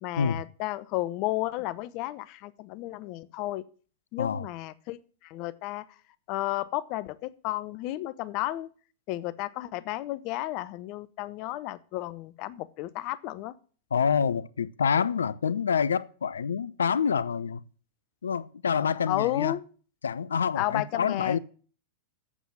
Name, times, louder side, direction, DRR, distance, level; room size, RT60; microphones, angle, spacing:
voice 1, 0.0-3.6 4.1-5.8 6.3-8.7 9.1-13.5 19.1-19.6 20.5-21.4, left 16 dB, 50° left, 0.8 m, -32 dB
voice 2, 13.9-17.6 18.2-19.5 20.0-21.4, left 6 dB, 80° left, 0.5 m, -27 dB
8.3 x 7.1 x 7.4 m
figure-of-eight pair, 95°, 0 cm